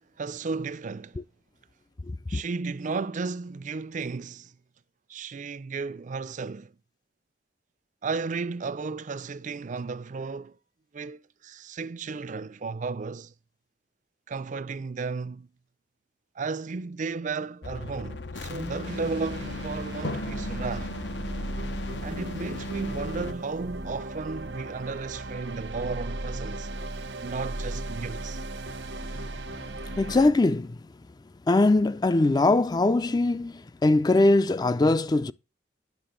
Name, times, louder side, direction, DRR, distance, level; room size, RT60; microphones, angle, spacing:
voice 1, 0.2-1.2 2.3-4.5 5.1-6.7 8.0-10.6 10.9-13.3 14.3-15.5 16.4-21.0 22.0-26.7 27.2-28.4, right 4 dB, 45° right, 0.5 m, -34 dB
voice 2, 2.1-2.4 30.0-30.8 31.5-35.3, left 2 dB, 25° left, 0.4 m, -22 dB
sound 1, 17.6-23.4, left 2 dB, 80° left, 0.9 m, -37 dB
sound 2, 18.8-30.3, right 1 dB, 80° right, 1.0 m, -37 dB
Drum, 20.0-22.9, left 1 dB, 65° left, 1.5 m, -40 dB
9.7 x 6.6 x 3.8 m
head